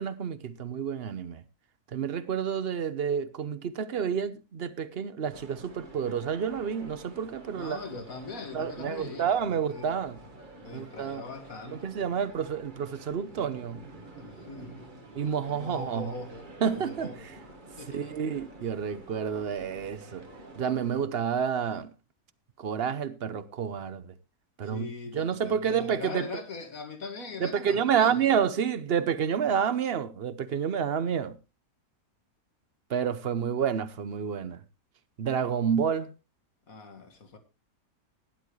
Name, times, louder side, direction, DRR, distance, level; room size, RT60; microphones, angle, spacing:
voice 1, 0.0-1.4 1.9-7.8 8.5-10.2 10.7-11.2 11.7-13.9 15.1-16.1 16.6-17.1 17.9-20.3 20.5-21.9 22.6-24.1 24.6-24.9 25.1-26.3 27.4-31.4 32.9-34.6 35.2-36.1, right 7 dB, 50° right, 0.9 m, -29 dB
sound 1, 5.3-21.0, right 2 dB, 30° right, 1.8 m, -49 dB
voice 2, 7.5-10.0 10.6-11.9 14.2-15.0 15.5-17.3 17.8-18.1 24.6-28.4 36.7-37.4, left 4 dB, 65° left, 2.3 m, -41 dB
17.0 x 11.0 x 3.2 m
omnidirectional pair, 1.6 m